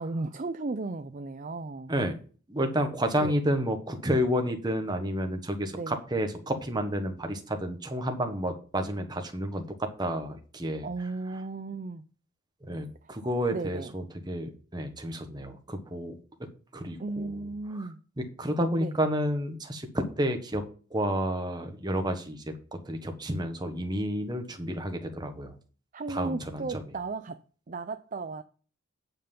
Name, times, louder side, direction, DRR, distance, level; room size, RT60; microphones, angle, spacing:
voice 1, 0.0-1.9 3.2-3.4 5.7-6.0 10.8-12.0 13.0-13.1 13.5-13.9 17.0-18.0 18.8-19.0 25.9-27.4 27.7-28.4, right 3 dB, 40° right, 0.4 m, -35 dB
voice 2, 2.5-10.9 12.6-16.1 16.7-17.4 17.8-17.9 18.2-20.6 20.9-22.5 22.8-25.5 26.1-26.6, equal, 20° right, 1.3 m, -30 dB
9.0 x 5.6 x 5.4 m
head